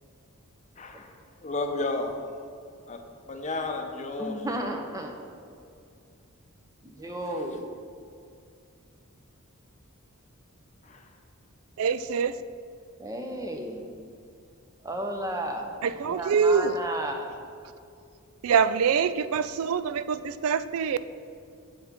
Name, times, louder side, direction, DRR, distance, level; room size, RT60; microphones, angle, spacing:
voice 1, 0.8-1.1 1.4-2.2 2.9-3.0 3.3-4.4 10.8-11.0, left 2 dB, 30° left, 4 dB, 0.7 m, -32 dB
voice 2, 4.2-5.6 6.8-7.6 13.0-13.9 14.8-15.7 16.0-17.3, right 1 dB, 15° right, 3 dB, 0.7 m, -33 dB
voice 3, 11.8-12.3 15.8-16.7 18.4-21.0, right 6 dB, 70° right, 14 dB, 0.3 m, -24 dB
8.4 x 7.0 x 3.7 m, 2.4 s
head